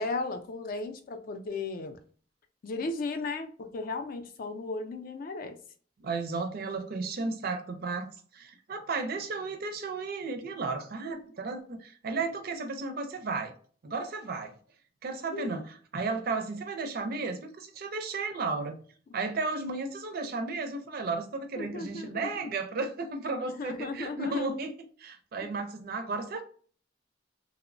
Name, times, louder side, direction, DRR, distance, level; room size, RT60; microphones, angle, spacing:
voice 1, 0.0-2.0 2.6-5.6 7.2-7.4 15.3-15.5 21.6-22.3 23.4-24.5, left 3 dB, 50° left, 0.4 m, -35 dB
voice 2, 6.0-13.5 13.8-14.6 15.0-18.8 19.1-24.7 25.0-26.4, right 3 dB, 55° right, 0.4 m, -34 dB
2.9 x 2.0 x 2.5 m
head